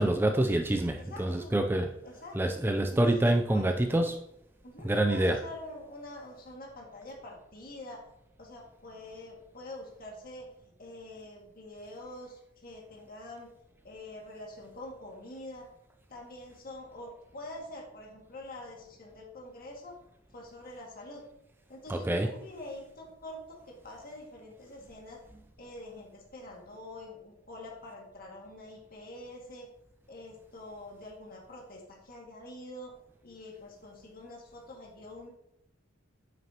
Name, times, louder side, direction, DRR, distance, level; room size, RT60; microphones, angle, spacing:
voice 1, 0.0-1.9 2.4-4.1 4.8-5.4 21.9-22.3, right 1 dB, 10° right, 5 dB, 0.4 m, -26 dB
voice 2, 1.0-1.5 2.0-2.6 2.9-3.7 4.0-4.1 4.6-8.0 8.4-13.5 13.8-15.7 16.1-19.9 20.3-21.3 21.7-25.2 25.6-29.7 30.1-32.9 33.2-35.3, left 1 dB, 50° left, -1 dB, 2.1 m, -46 dB
9.1 x 6.3 x 2.9 m, 0.82 s
head